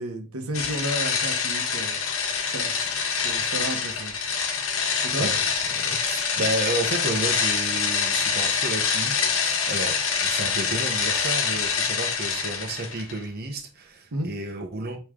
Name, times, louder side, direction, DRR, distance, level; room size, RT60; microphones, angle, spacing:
voice 1, 0.0-2.0 2.5-2.9 3.2-4.2 5.1-5.3 14.1-14.3, right 1 dB, 85° right, 1.1 m, -32 dB
sound 1, 0.5-13.2, left 6 dB, 65° left, 1.3 m, -25 dB
voice 2, 5.2-15.0, right 2 dB, 45° right, 0.9 m, -32 dB
8.2 x 3.2 x 3.7 m
head